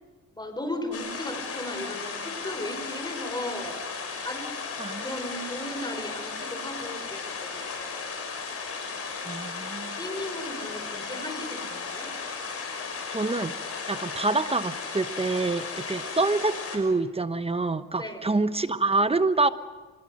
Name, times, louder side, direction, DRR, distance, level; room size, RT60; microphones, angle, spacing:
voice 1, 0.3-3.8 4.2-4.5 5.0-8.1 10.0-12.1 18.0-18.4, left 1 dB, 15° left, 7 dB, 5.3 m, -36 dB
sound 1, 0.9-16.8, left 5 dB, 50° left, 6.0 m, -35 dB
voice 2, 4.8-5.3 9.3-10.0 13.1-19.5, right 3 dB, 20° right, 12 dB, 1.0 m, -27 dB
25.5 x 22.0 x 6.5 m, 1.4 s
cardioid pair, 90°, 30 cm